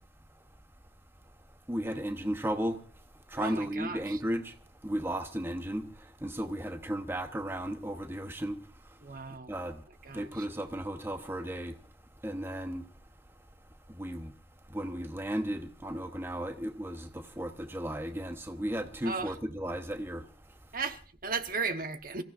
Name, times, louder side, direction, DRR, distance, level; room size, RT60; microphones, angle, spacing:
voice 1, 1.7-2.8 3.3-4.5 4.8-5.9 6.2-8.6 9.5-9.8 10.1-11.7 12.2-12.8 13.9-14.3 14.7-20.2, equal, 15° right, 0.9 m, -34 dB
voice 2, 3.4-4.2 9.0-9.5 10.0-10.4 19.0-19.3 20.7-22.2, right 4 dB, 55° right, 1.1 m, -36 dB
28.0 x 15.5 x 2.5 m
head